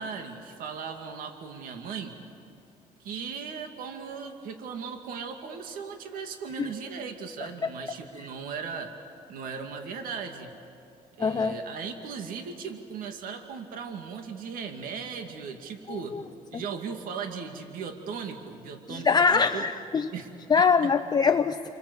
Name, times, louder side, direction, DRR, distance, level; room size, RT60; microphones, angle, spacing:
voice 1, 0.0-2.1 3.0-8.9 9.3-10.5 11.2-16.2 16.5-19.7 20.1-20.3 20.6-20.9, right 6 dB, 75° right, 5 dB, 2.2 m, -37 dB
voice 2, 11.2-11.6 15.9-16.2 19.0-20.1 20.5-21.6, left 5 dB, 30° left, 7 dB, 0.7 m, -23 dB
29.5 x 24.5 x 8.1 m, 2.8 s
cardioid pair, 115°, 14 cm